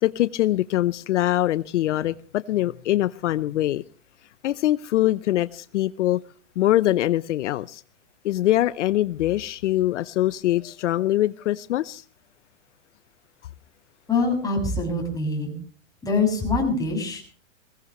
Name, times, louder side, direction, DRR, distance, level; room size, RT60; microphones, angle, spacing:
voice 1, 0.0-3.8 4.4-6.2 6.6-7.8 8.2-12.0, left 14 dB, 75° left, 0.8 m, -23 dB
voice 2, 14.1-15.5 16.0-17.2, left 3 dB, 10° left, 6.8 m, -24 dB
21.5 x 18.0 x 3.1 m
hypercardioid pair, 145°, 37 cm